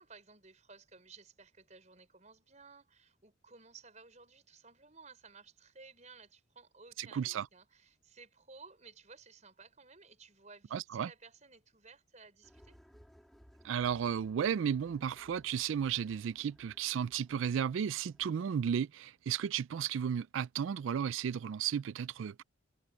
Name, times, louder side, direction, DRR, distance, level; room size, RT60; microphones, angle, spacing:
voice 1, 0.0-12.8, right 4 dB, 35° right, 5.5 m, -57 dB
voice 2, 7.0-7.5 10.7-11.1 13.6-22.4, right 8 dB, 70° right, 0.3 m, -34 dB
sound 1, 12.4-18.3, equal, ahead, 2.1 m, -62 dB
head